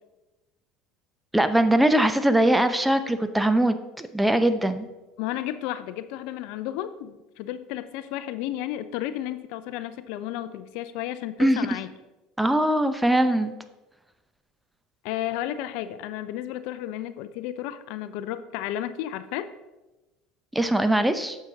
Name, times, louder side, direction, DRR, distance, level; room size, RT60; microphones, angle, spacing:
voice 1, 1.3-4.9 11.4-11.6 12.4-13.5 20.5-21.4, right 1 dB, 5° right, 10 dB, 0.7 m, -21 dB
voice 2, 5.2-11.9 15.0-19.5, left 12 dB, 65° left, 13 dB, 0.4 m, -33 dB
8.8 x 6.6 x 3.9 m, 1.1 s
hypercardioid pair, 75°, 0 cm